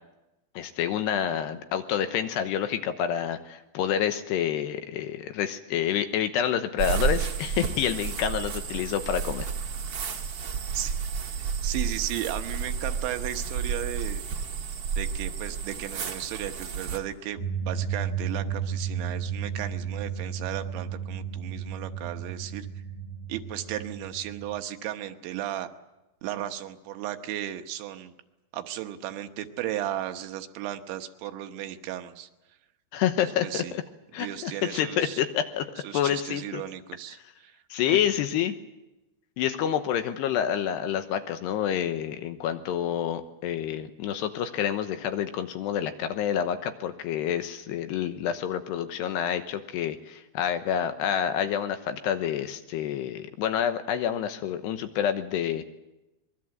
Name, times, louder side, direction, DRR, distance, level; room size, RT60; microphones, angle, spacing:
voice 1, 0.6-9.5 32.9-33.8 34.1-35.7 35.9-36.6 37.7-38.5 39.4-55.7, left 9 dB, 75° left, 9 dB, 2.9 m, -28 dB
sound 1, 6.8-17.0, right 6 dB, 55° right, 1.7 m, -31 dB
voice 2, 11.4-14.2 15.0-22.7 23.3-25.7 26.2-28.1 28.5-32.3 33.2-33.7 34.2-35.2 35.8-37.6, right 12 dB, 80° right, 7 dB, 3.4 m, -35 dB
sound 2, 17.4-24.6, right 7 dB, 15° left, 2.9 m, -33 dB
24.5 x 22.0 x 7.8 m, 0.99 s
omnidirectional pair, 5.3 m